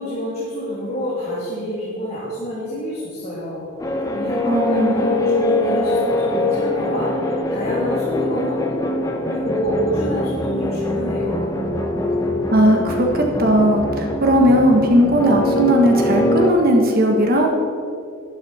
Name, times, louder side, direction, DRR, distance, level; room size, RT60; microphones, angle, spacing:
voice 1, 0.0-3.7 4.1-8.8 9.2-11.6, equal, 30° left, -9 dB, 3.1 m, -27 dB
sound 1, 3.8-16.5, left 1 dB, 15° left, 1.0 m, -22 dB
voice 2, 4.5-5.0 12.5-17.5, equal, 45° right, 1 dB, 1.5 m, -17 dB
12.0 x 12.0 x 4.4 m, 2.4 s
head